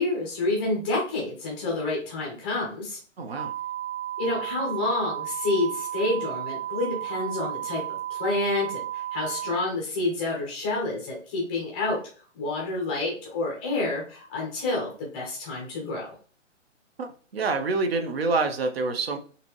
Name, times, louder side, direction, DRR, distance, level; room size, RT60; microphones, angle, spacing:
voice 1, 0.0-3.0 4.2-12.0 12.3-16.1, left 2 dB, 10° left, -3 dB, 0.6 m, -28 dB
voice 2, 3.2-3.5 17.0-19.2, right 3 dB, 50° right, 7 dB, 0.9 m, -27 dB
sound 1, 3.4-9.6, right 12 dB, 90° right, 0.8 m, -33 dB
5.7 x 2.8 x 3.1 m, 0.42 s
hypercardioid pair, 155°, 38 cm